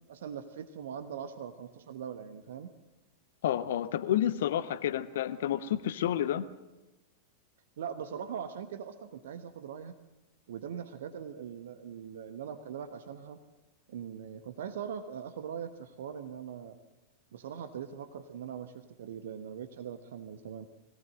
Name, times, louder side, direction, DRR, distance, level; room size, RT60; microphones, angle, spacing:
voice 1, 0.1-2.7 7.8-9.9 10.5-13.4 13.9-16.8 17.3-20.7, right 8 dB, 60° right, 10 dB, 1.1 m, -41 dB
voice 2, 3.4-6.5, left 11 dB, 60° left, 12 dB, 0.8 m, -30 dB
22.0 x 17.5 x 7.8 m, 1.0 s
figure-of-eight pair, 90°, 0 cm